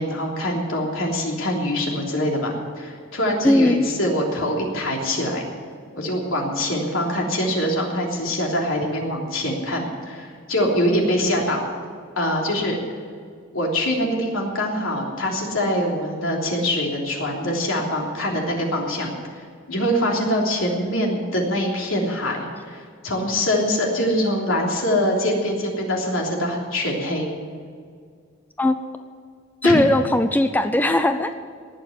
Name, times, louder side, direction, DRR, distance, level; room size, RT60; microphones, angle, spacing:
voice 1, 0.0-5.4 5.9-11.6 12.2-12.8 13.5-27.3 29.6-29.8, equal, 80° left, -1 dB, 3.3 m, -24 dB
voice 2, 3.4-3.9 28.6-28.8 29.6-31.3, left 1 dB, 10° left, 8 dB, 0.5 m, -18 dB
19.0 x 7.0 x 9.6 m, 2.1 s
head